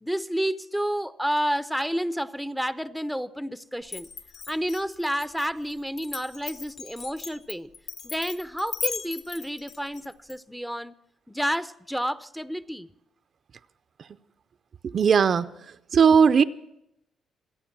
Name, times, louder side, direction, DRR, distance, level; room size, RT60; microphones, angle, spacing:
voice 1, 0.0-4.1 4.5-7.7 8.0-10.9 11.3-12.9, equal, ahead, 0.6 m, -30 dB
Glass, 3.9-10.3, left 5 dB, 55° left, 1.0 m, -37 dB
voice 2, 14.8-15.5 15.9-16.4, right 6 dB, 50° right, 0.5 m, -18 dB
26.0 x 9.2 x 6.0 m
cardioid pair, 90°, 0 cm